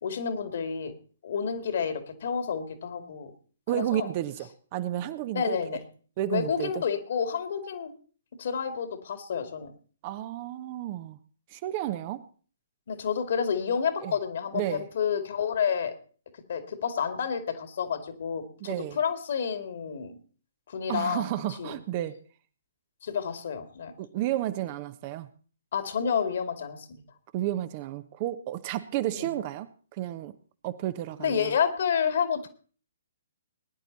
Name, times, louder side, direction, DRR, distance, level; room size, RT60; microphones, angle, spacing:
voice 1, 0.0-0.9 1.2-3.3 3.7-4.1 5.3-5.8 6.3-7.9 8.4-9.7 12.9-15.9 16.5-20.1 20.7-21.3 21.6-21.8 23.0-23.9 25.7-27.0 29.1-29.3 31.2-32.5, left 7 dB, 55° left, 8 dB, 2.4 m, -29 dB
voice 2, 3.7-5.6 6.2-6.8 10.0-11.2 11.5-12.2 14.0-14.1 14.5-14.9 18.6-19.0 20.9-22.2 24.0-25.3 27.3-29.7 30.0-30.3 30.6-31.5, right 13 dB, 35° right, 12 dB, 1.0 m, -32 dB
20.5 x 10.5 x 4.1 m, 0.42 s
figure-of-eight pair, 125°, 0 cm